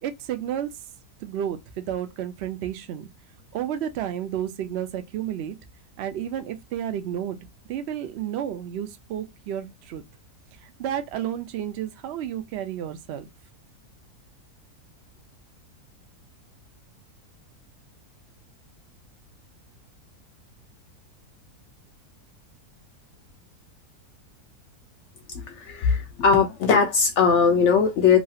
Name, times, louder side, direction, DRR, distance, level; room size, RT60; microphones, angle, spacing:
voice 1, 0.0-0.7 1.2-3.1 3.5-5.6 6.0-7.4 7.7-10.0 10.6-13.3, right 10 dB, 75° right, 0.6 m, -31 dB
voice 2, 25.3-28.2, left 6 dB, 70° left, 0.7 m, -20 dB
3.1 x 2.3 x 2.6 m
omnidirectional pair, 1.7 m